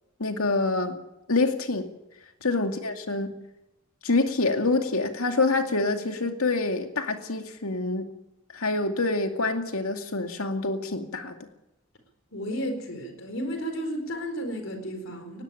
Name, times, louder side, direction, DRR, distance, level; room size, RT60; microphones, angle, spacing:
voice 1, 0.2-1.0 1.3-1.9 2.4-3.4 4.0-8.1 8.5-11.3, left 3 dB, 90° left, 6 dB, 2.3 m, -26 dB
voice 2, 12.3-15.4, equal, 65° left, 6 dB, 4.6 m, -33 dB
19.5 x 16.5 x 9.0 m, 0.95 s
head